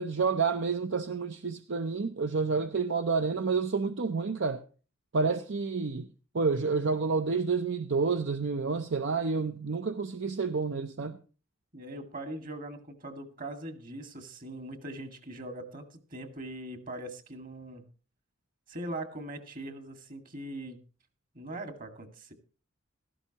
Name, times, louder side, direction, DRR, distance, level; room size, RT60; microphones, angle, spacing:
voice 1, 0.0-4.6 5.1-6.1 6.3-11.2, right 4 dB, 65° right, 0.7 m, -29 dB
voice 2, 11.7-17.8 18.7-20.8 21.3-22.3, right 1 dB, 45° right, 2.0 m, -41 dB
16.0 x 13.5 x 2.9 m
head